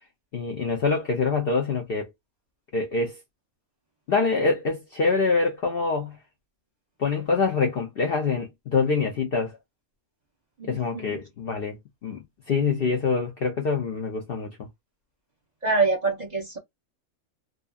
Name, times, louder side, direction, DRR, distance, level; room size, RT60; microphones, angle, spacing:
voice 1, 0.3-2.1 2.7-3.2 4.1-6.2 7.0-9.6 10.7-14.6, left 4 dB, 55° left, 0.7 m, -25 dB
voice 2, 10.6-11.2 15.6-16.6, right 3 dB, 35° right, 0.8 m, -26 dB
2.6 x 2.3 x 2.3 m
omnidirectional pair, 1.4 m